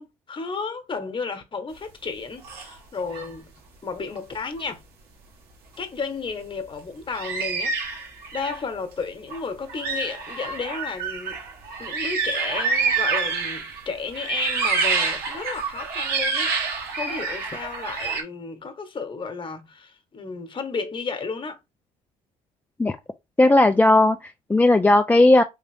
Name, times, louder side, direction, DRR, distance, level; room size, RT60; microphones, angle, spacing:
voice 1, 0.0-3.5 3.8-4.8 5.8-8.1 8.3-11.4 11.8-21.6, left 4 dB, 30° left, 1.2 m, -33 dB
sound 1, 2.4-2.7 3.1-3.3 4.2-4.3 7.1-8.6 9.3-9.4 9.7-13.8 14.1-18.2, right 5 dB, 65° right, 1.5 m, -27 dB
voice 2, 23.4-25.4, left 2 dB, 10° left, 0.4 m, -16 dB
3.6 x 2.8 x 3.4 m
supercardioid pair, 75°, 17 cm